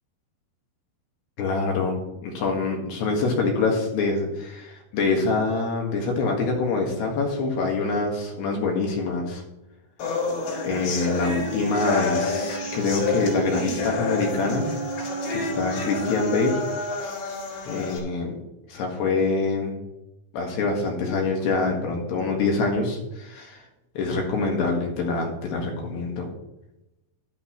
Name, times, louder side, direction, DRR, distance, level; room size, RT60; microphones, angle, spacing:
voice 1, 1.4-9.4 10.6-14.7 15.3-16.6 17.7-18.4 18.7-19.8 20.3-23.6 24.0-26.3, left 3 dB, 65° left, 1 dB, 3.5 m, -25 dB
sound 1, 10.0-18.0, left 4 dB, 90° left, 6.6 m, -29 dB
Wind instrument woodwind instrument, 10.4-16.5, right 5 dB, 80° right, 2.1 m, -34 dB
13.0 x 12.5 x 3.1 m, 0.93 s
omnidirectional pair, 5.7 m